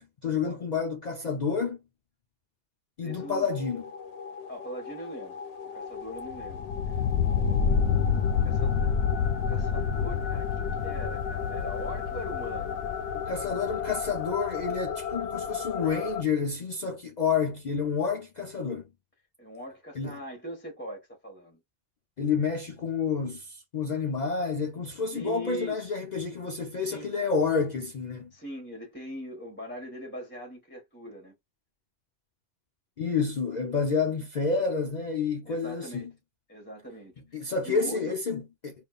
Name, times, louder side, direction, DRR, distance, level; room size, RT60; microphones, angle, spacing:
voice 1, 0.0-1.8 3.0-3.8 13.3-18.8 20.0-20.2 22.2-28.3 33.0-36.0 37.3-38.7, left 5 dB, 55° left, 0.5 m, -29 dB
voice 2, 3.0-3.5 4.5-7.0 7.3-9.2 9.5-12.8 19.4-21.6 25.1-25.9 26.8-27.1 28.3-31.3 34.0-34.1 35.5-36.1 36.5-38.1, equal, 10° left, 1.1 m, -41 dB
sound 1, 3.1-16.2, left 7 dB, 75° left, 0.9 m, -29 dB
5.2 x 2.5 x 2.3 m
omnidirectional pair, 1.2 m